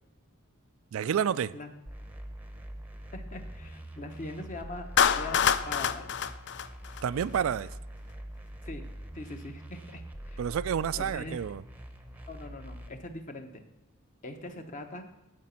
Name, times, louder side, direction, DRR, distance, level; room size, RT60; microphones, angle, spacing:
voice 1, 0.9-1.6 7.0-7.7 10.4-11.6, right 8 dB, 65° right, 0.3 m, -29 dB
sound 1, 1.9-12.9, right 1 dB, 10° right, 0.8 m, -44 dB
voice 2, 3.1-4.9 5.2-5.4 5.7-6.1 8.6-8.9 9.1-10.4 11.0-11.4 12.3-13.6 14.2-15.1, left 2 dB, 35° left, 1.0 m, -42 dB
Clapping, 5.0-7.4, left 8 dB, 50° left, 0.4 m, -26 dB
15.0 x 5.1 x 5.8 m
head